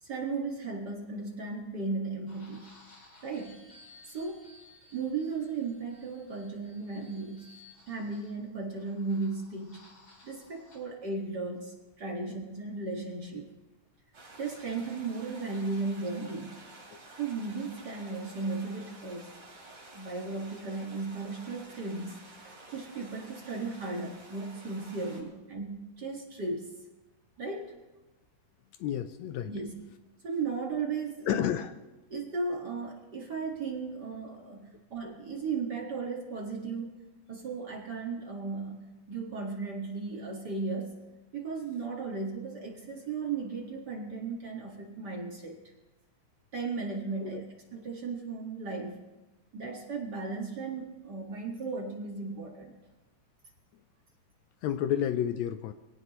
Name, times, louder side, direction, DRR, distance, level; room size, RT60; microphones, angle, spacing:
voice 1, 0.0-2.7 3.2-3.6 4.1-4.5 4.9-7.5 7.9-9.8 10.2-13.5 14.4-16.6 17.2-19.3 19.7-22.2 22.7-26.7 27.4-27.7 29.5-29.8 30.2-31.5 32.1-37.0 37.3-40.9 41.3-45.6 46.5-47.5 47.7-49.0 49.5-52.7, right 4 dB, 40° right, 0 dB, 2.0 m, -36 dB
sound 1, 2.3-10.8, left 2 dB, 30° left, 3.2 m, -58 dB
Creek - Moderate Flow, 14.1-25.2, right 2 dB, 65° right, 5.2 m, -51 dB
voice 2, 28.8-29.5 31.3-31.7 47.2-47.4 54.6-55.7, left 10 dB, 75° left, 10 dB, 1.8 m, -30 dB
23.5 x 17.0 x 3.1 m, 1.1 s
omnidirectional pair, 3.4 m